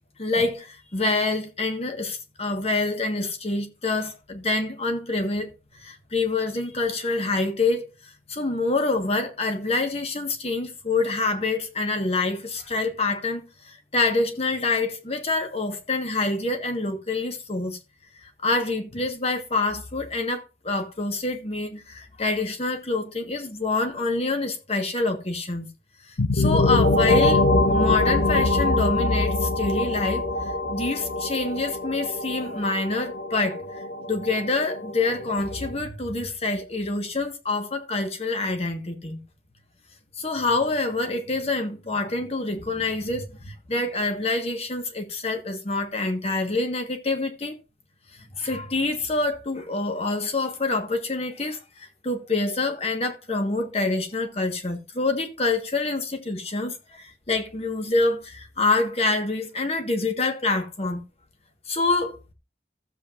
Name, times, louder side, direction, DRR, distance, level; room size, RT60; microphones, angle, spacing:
voice 1, 0.2-17.8 18.2-25.7 26.1-33.8 34.1-39.2 40.2-47.6 48.3-61.0 61.7-62.2, left 3 dB, 35° left, 1.5 m, -26 dB
sound 1, 26.2-35.7, left 2 dB, 85° left, 0.9 m, -24 dB
15.0 x 7.5 x 2.6 m
head